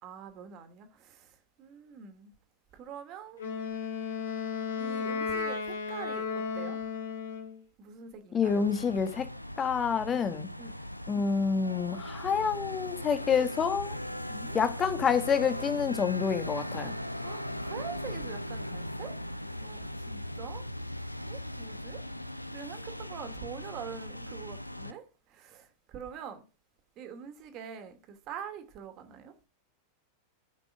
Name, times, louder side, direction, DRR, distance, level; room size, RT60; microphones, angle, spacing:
voice 1, 0.0-1.3 1.6-2.3 2.7-3.4 4.8-6.3 6.5-6.8 7.8-8.7 10.6-10.7 14.3-14.6 17.2-19.1 19.6-20.6 21.3-22.0 22.5-25.0 25.3-26.4 27.0-29.3, right 7 dB, 40° right, 2.5 m, -44 dB
Wind instrument woodwind instrument, 3.4-7.6, left 5 dB, 70° left, 3.5 m, -34 dB
voice 2, 8.3-9.2 9.6-10.5 11.1-14.0 14.5-16.9, left 6 dB, 25° left, 1.5 m, -28 dB
sound 1, 8.4-24.9, left 1 dB, 90° left, 0.6 m, -39 dB
13.0 x 6.0 x 6.2 m
figure-of-eight pair, 90°, 0 cm